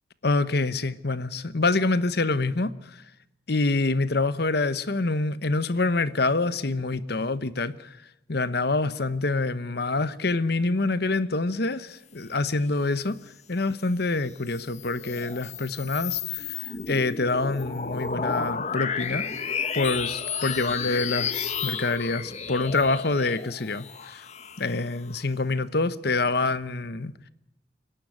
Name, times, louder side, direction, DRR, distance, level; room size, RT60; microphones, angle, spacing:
voice 1, 0.2-2.7 3.5-8.0 8.3-13.2 13.5-19.3 19.7-24.2 24.6-27.1, left 3 dB, 55° left, 1.0 m, -26 dB
sound 1, 14.3-25.2, left 6 dB, 35° left, 1.3 m, -32 dB
26.5 x 11.5 x 9.3 m
head